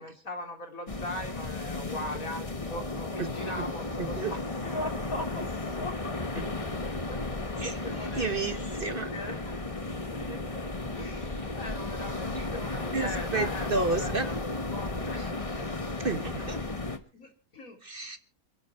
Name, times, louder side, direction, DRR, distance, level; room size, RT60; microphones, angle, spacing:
voice 1, 0.0-6.2 6.6-8.8 9.1-9.4 9.7-10.7 10.9-14.4 14.7-15.3 15.8-15.9 17.1-17.8, left 1 dB, 70° left, 4 dB, 3.8 m, -40 dB
sound 1, 0.9-17.0, left 2 dB, 25° left, 1.4 m, -34 dB
voice 2, 3.2-3.7 4.0-4.3 6.3-6.5 7.6-9.1 12.4-12.5 12.9-14.3 15.1-15.3 16.0-16.6 17.8-18.2, right 3 dB, 40° right, 9 dB, 1.2 m, -32 dB
28.0 x 10.5 x 3.3 m, 0.35 s
omnidirectional pair, 1.5 m